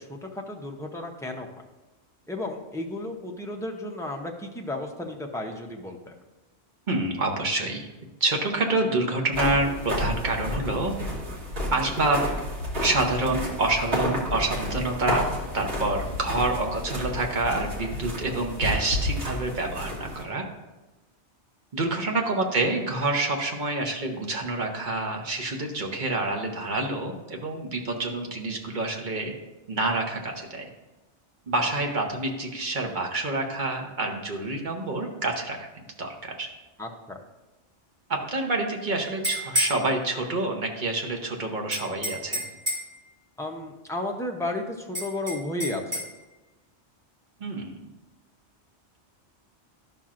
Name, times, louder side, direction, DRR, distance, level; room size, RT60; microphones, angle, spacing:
voice 1, 0.0-1.5 2.3-6.1 19.8-20.0 36.8-37.2 43.4-46.0, left 1 dB, 5° left, 1 dB, 0.4 m, -33 dB
voice 2, 6.9-7.9 8.2-10.9 11.7-12.2 12.8-20.4 21.7-29.3 29.7-30.7 31.5-36.5 38.1-42.4 47.4-47.9, right 2 dB, 45° right, 1 dB, 1.0 m, -27 dB
sound 1, 9.3-20.2, equal, 65° right, 1.8 m, -31 dB
sound 2, 39.0-39.8 41.7-42.9 44.9-46.1, equal, 30° right, 2.2 m, -29 dB
12.0 x 5.7 x 2.5 m, 1.1 s
omnidirectional pair, 1.2 m